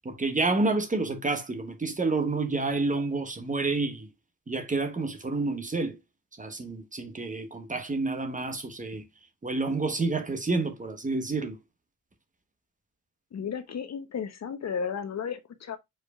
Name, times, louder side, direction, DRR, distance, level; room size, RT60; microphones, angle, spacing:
voice 1, 0.0-4.1 4.5-6.0 6.4-9.0 9.4-11.6, right 3 dB, 25° right, 1.0 m, -29 dB
voice 2, 13.3-15.8, left 6 dB, 60° left, 0.8 m, -34 dB
4.8 x 4.6 x 2.3 m
wide cardioid pair, 140°, 31 cm